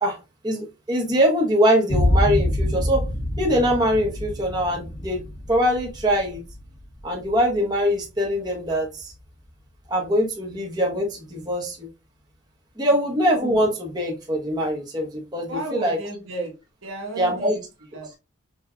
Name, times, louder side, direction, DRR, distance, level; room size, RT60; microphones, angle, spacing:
voice 1, 0.0-3.0 3.4-5.2 5.5-6.4 7.0-9.1 9.9-11.9 12.8-16.0 17.2-17.5, equal, 20° right, -2 dB, 1.2 m, -23 dB
sound 1, 1.9-9.3, left 1 dB, 65° left, 1.2 m, -27 dB
voice 2, 15.5-16.5 16.8-17.6 17.9-18.2, right 2 dB, 80° right, 0 dB, 1.6 m, -33 dB
5.5 x 3.0 x 2.4 m, 0.26 s
head